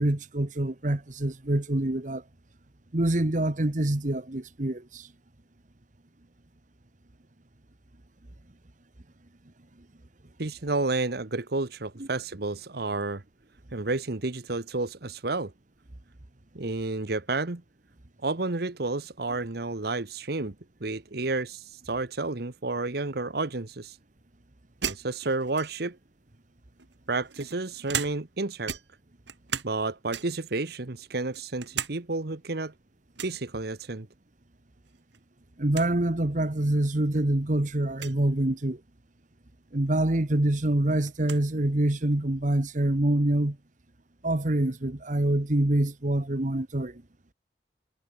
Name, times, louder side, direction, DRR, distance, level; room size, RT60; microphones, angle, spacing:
voice 1, 0.0-2.2 2.9-5.1 35.6-38.8 39.7-43.6 44.2-47.0, right 1 dB, 45° right, 1.3 m, -26 dB
voice 2, 10.4-13.2 13.7-15.5 16.5-17.6 18.2-20.5 20.8-24.0 24.9-26.0 27.1-28.7 29.6-32.7 33.2-34.1, right 3 dB, 60° right, 1.2 m, -31 dB
sound 1, 24.8-26.0 26.8-28.4 28.7-29.8 30.1-30.5 31.0-32.0 32.3-32.4 33.2-33.4 34.9-35.2 35.5-35.6 35.7-35.9 36.7-36.8 37.9-38.2 39.9-40.0 40.3-41.5, right 7 dB, 80° right, 2.8 m, -36 dB
head